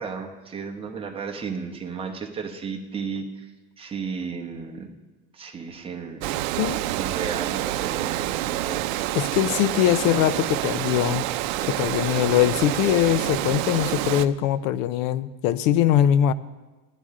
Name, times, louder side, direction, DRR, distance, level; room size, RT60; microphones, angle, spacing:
voice 1, 0.0-3.5 3.8-4.9 5.3-6.3 7.0-9.1, right 5 dB, 15° right, 1 dB, 0.9 m, -34 dB
Water, 6.2-14.3, right 15 dB, 75° right, 0.6 m, -27 dB
voice 2, 9.1-11.2 11.7-16.3, left 11 dB, 75° left, 15 dB, 0.6 m, -22 dB
15.5 x 10.0 x 3.7 m, 1.2 s
cardioid pair, 165°, 41 cm